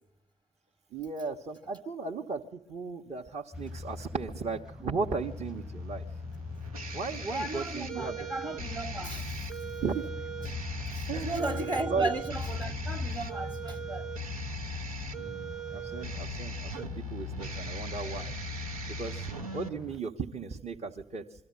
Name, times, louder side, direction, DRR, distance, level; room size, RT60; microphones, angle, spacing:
voice 1, 0.9-6.0 6.9-8.2 9.8-10.1 11.1-12.1 15.1-18.3 18.9-19.3 19.5-21.5, right 4 dB, 40° right, 1.3 m, -36 dB
sound 1, 3.5-20.0, left 3 dB, 5° right, 0.9 m, -42 dB
sound 2, 5.2-19.7, right 1 dB, 85° right, 1.0 m, -39 dB
voice 2, 7.3-9.5 10.9-14.1, right 2 dB, 20° right, 1.4 m, -35 dB
23.5 x 13.5 x 9.9 m
figure-of-eight pair, 45°, 18 cm